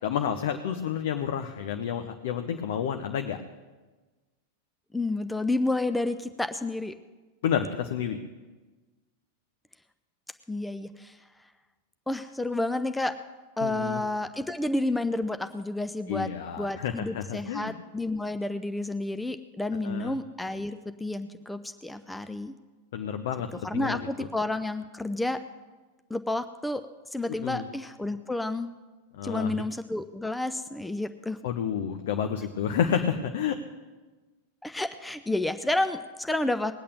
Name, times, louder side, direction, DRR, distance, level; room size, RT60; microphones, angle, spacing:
voice 1, 0.0-3.4 7.4-8.2 13.6-14.0 16.1-17.8 19.8-20.2 22.9-24.3 27.3-27.6 29.2-29.6 31.4-33.6, left 8 dB, 55° left, 7 dB, 0.9 m, -30 dB
voice 2, 4.9-7.0 10.5-11.2 12.1-13.2 13.6-16.3 16.6-22.5 23.6-25.4 26.1-26.8 27.1-28.7 29.2-31.4 34.6-36.7, left 2 dB, 5° left, 10 dB, 0.5 m, -30 dB
20.0 x 8.6 x 6.9 m, 1.3 s
figure-of-eight pair, 90°, 0 cm